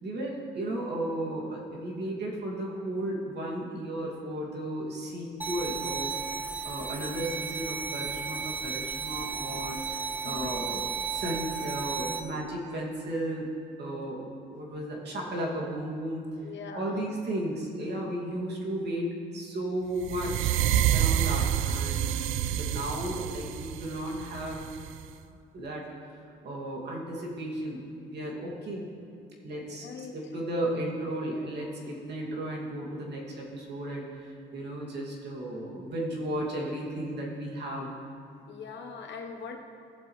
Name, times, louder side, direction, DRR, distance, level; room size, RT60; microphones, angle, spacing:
voice 1, 0.0-6.2 6.6-10.8 11.1-13.5 13.8-16.3 16.7-20.5 20.9-22.2 22.5-24.6 25.5-25.8 26.4-28.9 29.4-37.9, right 1 dB, 60° right, -3 dB, 2.5 m, -34 dB
sound 1, 5.4-12.2, right 5 dB, 10° right, 0.9 m, -34 dB
voice 2, 10.2-10.8 16.4-17.2 29.6-30.2 38.4-39.6, left 5 dB, 65° left, 3 dB, 1.2 m, -42 dB
sound 2, 20.0-25.1, right 10 dB, 85° right, 0.4 m, -28 dB
17.5 x 7.4 x 3.3 m, 2.5 s
cardioid pair, 90°, 20 cm